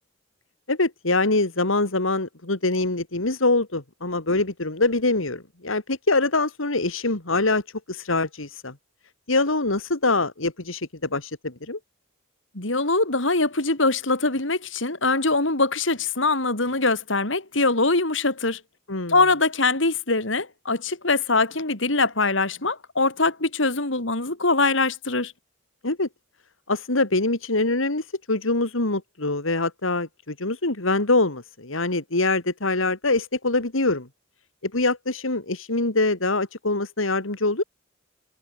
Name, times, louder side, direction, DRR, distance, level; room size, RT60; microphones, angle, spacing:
voice 1, 0.7-7.6 7.9-8.7 9.3-11.8 18.9-19.2 25.8-26.1 26.7-34.1 34.6-37.6, left 2 dB, 85° left, 2.7 m, -24 dB
voice 2, 12.5-18.6 19.1-25.3, left 3 dB, 70° left, 3.7 m, -23 dB
head